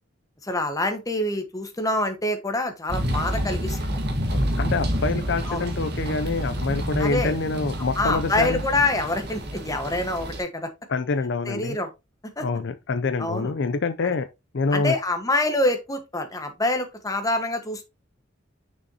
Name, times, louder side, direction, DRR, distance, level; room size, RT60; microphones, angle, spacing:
voice 1, 0.4-4.0 5.5-5.6 7.0-7.3 7.9-10.7 11.5-11.9 12.4-12.5 13.2-13.5 14.7-17.9, left 2 dB, 20° left, 1.3 m, -26 dB
sound 1, 2.9-10.4, equal, 55° right, 1.8 m, -28 dB
voice 2, 4.3-8.6 10.9-11.8 12.4-14.3 14.5-15.0, left 4 dB, 65° left, 0.5 m, -26 dB
6.3 x 6.3 x 2.8 m
head